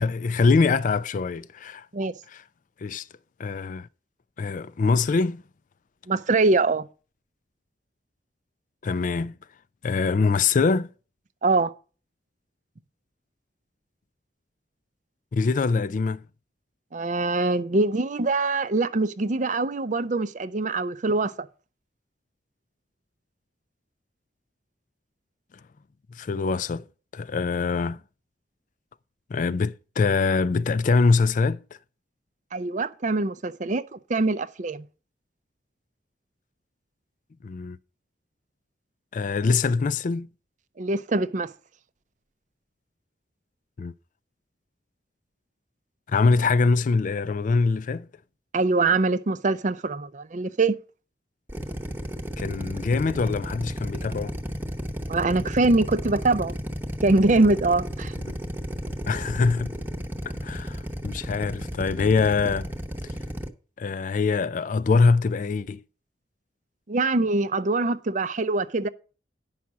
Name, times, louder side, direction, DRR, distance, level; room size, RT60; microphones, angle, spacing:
voice 1, 0.0-1.9 2.3-2.4 2.8-3.1 3.4-3.9 4.4-5.4 8.8-9.3 9.8-10.9 15.3-16.2 26.2-26.8 27.1-28.0 29.3-31.6 37.4-37.8 39.1-40.3 43.8-43.9 46.1-48.1 52.4-54.4 59.1-59.8 60.4-62.7 63.8-65.8, left 4 dB, 45° left, 0.4 m, -23 dB
voice 2, 6.1-6.9 11.4-11.7 16.9-21.5 32.5-34.8 40.8-41.5 48.5-50.8 55.1-56.5 57.0-58.1 66.9-68.9, right 3 dB, 45° right, 0.6 m, -23 dB
Drill, 51.5-63.5, equal, 10° right, 0.9 m, -33 dB
9.6 x 5.8 x 6.1 m
head